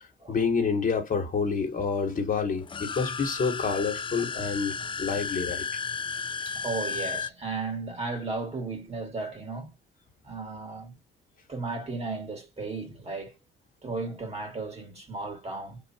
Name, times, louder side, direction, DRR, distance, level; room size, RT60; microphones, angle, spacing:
voice 1, 0.0-5.7, left 5 dB, 45° left, 1.6 m, -28 dB
sound 1, 2.6-7.3, left 5 dB, 25° left, 0.4 m, -33 dB
voice 2, 6.5-9.7 10.2-10.9 11.5-13.4 13.8-15.8, right 3 dB, 30° right, 2.4 m, -35 dB
3.9 x 2.9 x 4.4 m
cardioid pair, 90°, 20 cm